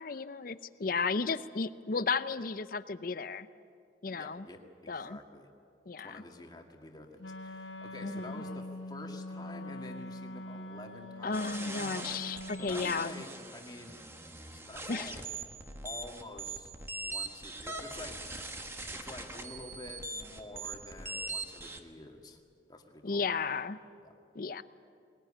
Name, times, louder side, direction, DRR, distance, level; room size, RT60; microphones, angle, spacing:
voice 1, 0.0-3.5 4.0-4.5 4.9-5.2 5.9-6.2 8.0-8.4 11.2-13.2 14.9-15.1 23.0-23.8 24.4-24.6, left 4 dB, 50° left, 14 dB, 0.6 m, -34 dB
voice 2, 4.2-5.5 6.0-11.9 12.6-14.0 14.5-15.2 15.8-16.7 17.0-18.5 18.9-22.4 22.7-23.3 24.0-24.1, left 2 dB, 25° left, 2 dB, 2.1 m, -48 dB
Wind instrument woodwind instrument, 7.2-13.3, left 1 dB, 90° left, 1.4 m, -44 dB
sound 1, 11.3-21.8, right 2 dB, 15° right, 1.4 m, -42 dB
21.0 x 20.0 x 9.9 m, 2.5 s
head